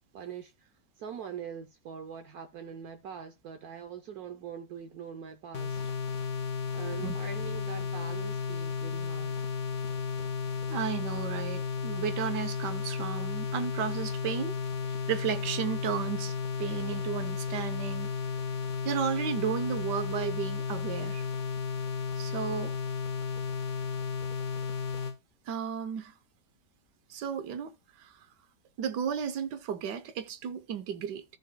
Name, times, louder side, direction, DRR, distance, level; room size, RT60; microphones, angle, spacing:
voice 1, 0.1-0.7 1.0-5.8 6.7-9.4 11.5-11.6, right 8 dB, 70° right, 1.2 m, -43 dB
sound 1, 5.5-25.2, left 6 dB, 60° left, 1.3 m, -33 dB
voice 2, 10.7-14.6 15.1-18.1 18.8-21.2 22.2-22.7 25.5-26.1 27.1-28.2 28.8-31.2, right 8 dB, 90° right, 1.4 m, -33 dB
14.0 x 6.7 x 2.2 m
omnidirectional pair, 1.8 m